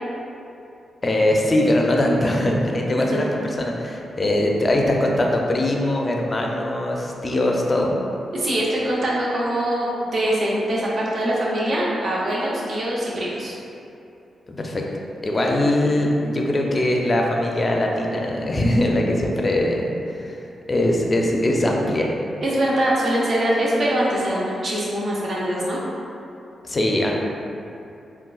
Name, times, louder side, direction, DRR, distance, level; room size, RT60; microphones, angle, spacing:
voice 1, 1.0-8.0 14.5-14.9 15.2-19.9 20.2-20.4 20.7-22.1 26.6-27.2, left 1 dB, 35° left, 0 dB, 0.4 m, -21 dB
voice 2, 8.3-13.5 22.4-25.8, right 1 dB, 60° right, -5 dB, 0.7 m, -23 dB
3.7 x 2.3 x 2.3 m, 2.7 s
cardioid pair, 65°, 0 cm